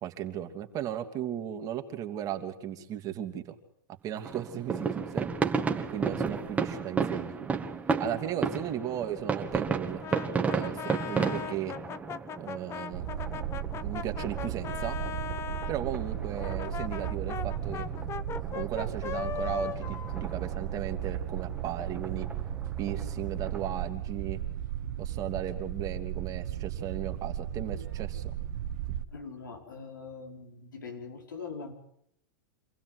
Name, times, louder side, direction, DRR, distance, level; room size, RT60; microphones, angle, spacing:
voice 1, 0.0-3.6 4.0-5.3 5.8-7.5 8.0-11.8 12.4-13.1 13.8-15.0 15.7-17.8 18.5-22.3 22.8-24.4 25.0-28.3, right 10 dB, 35° right, 5 dB, 2.6 m, -36 dB
sound 1, 4.2-23.9, right 5 dB, 15° right, 2.0 m, -35 dB
Brass instrument, 10.0-15.8 16.4-21.1, left 8 dB, 25° left, 1.0 m, -39 dB
sound 2, 12.9-29.0, right 11 dB, 65° right, 1.7 m, -35 dB
voice 2, 29.1-31.7, left 5 dB, 90° left, 2 dB, 5.2 m, -42 dB
26.5 x 16.0 x 8.1 m, 0.71 s
hypercardioid pair, 115°, 10 cm